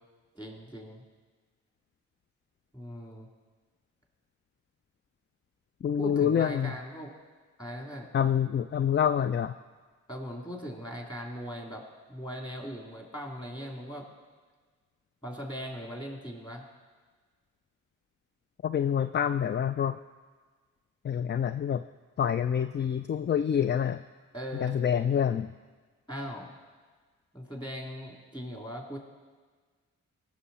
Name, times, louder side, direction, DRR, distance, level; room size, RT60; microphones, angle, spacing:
voice 1, 0.3-1.0 2.7-3.3 6.0-7.1 7.6-8.1 10.1-14.1 15.2-16.7 24.3-24.8 26.1-26.5 27.3-29.0, equal, 10° left, 0 dB, 3.1 m, -39 dB
voice 2, 5.8-6.7 8.1-9.5 18.6-20.0 21.0-21.8 22.2-24.0 24.6-25.5, left 8 dB, 30° left, 11 dB, 0.4 m, -27 dB
16.5 x 6.3 x 4.2 m, 1.4 s
supercardioid pair, 40°, 36 cm